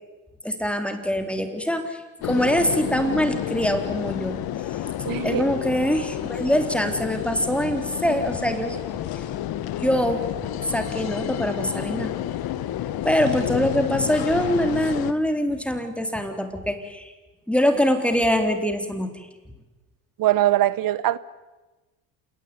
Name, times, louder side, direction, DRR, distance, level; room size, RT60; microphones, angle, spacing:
voice 1, 0.4-4.4 5.2-8.8 9.1-9.2 9.8-10.2 10.6-12.1 13.0-17.1 17.5-19.3, equal, 5° left, 3.7 m, -24 dB
sound 1, 2.2-15.1, left 12 dB, 60° left, 1.7 m, -30 dB
voice 2, 5.0-5.4 20.2-21.2, right 14 dB, 55° right, 1.1 m, -21 dB
28.0 x 18.0 x 9.8 m
supercardioid pair, 85°, 41 cm